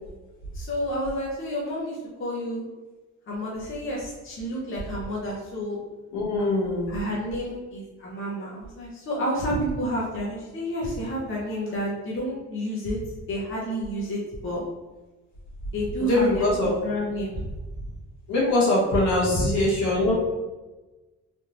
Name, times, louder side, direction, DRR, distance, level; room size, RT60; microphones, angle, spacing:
voice 1, 0.5-2.6 3.3-5.8 6.4-6.6 6.9-13.0 13.3-14.6 15.7-16.4 16.8-17.3 19.3-19.4, equal, 45° left, -5 dB, 1.0 m, -30 dB
voice 2, 6.1-6.9 16.0-16.7 18.3-20.1, left 2 dB, 70° left, -5 dB, 1.5 m, -22 dB
3.5 x 2.6 x 3.0 m, 1.2 s
cardioid pair, 90°, 30 cm